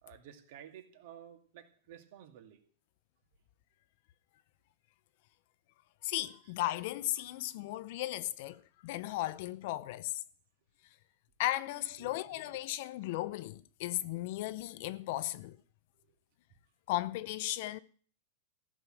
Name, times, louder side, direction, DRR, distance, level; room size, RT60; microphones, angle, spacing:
voice 1, 0.0-2.6 6.4-6.6 7.7-7.8 11.7-12.6 14.4-14.6 15.9-16.2, right 9 dB, 55° right, 2.4 m, -54 dB
voice 2, 6.0-10.2 11.4-15.6 16.9-17.8, left 16 dB, 50° left, 0.6 m, -36 dB
14.5 x 6.6 x 9.0 m
supercardioid pair, 165°, 0 cm